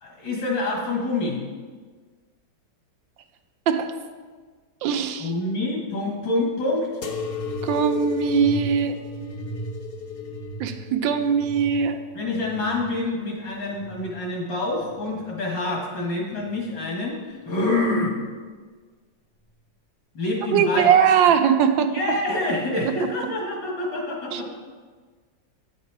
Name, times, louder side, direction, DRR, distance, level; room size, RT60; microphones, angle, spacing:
voice 1, 0.0-1.4 5.2-6.9 12.2-18.1 20.1-20.9 21.9-24.5, left 2 dB, 75° left, -1 dB, 2.5 m, -26 dB
voice 2, 3.7-4.0 4.8-5.3 7.6-9.0 10.6-12.0 20.5-22.2 22.8-23.3 24.3-24.7, right 7 dB, 85° right, 7 dB, 1.4 m, -21 dB
sound 1, 7.0-14.2 14.8-15.5 16.3-16.8 17.8-17.9, left 3 dB, 60° left, 0.6 m, -34 dB
9.4 x 7.2 x 4.7 m, 1.5 s
omnidirectional pair, 2.0 m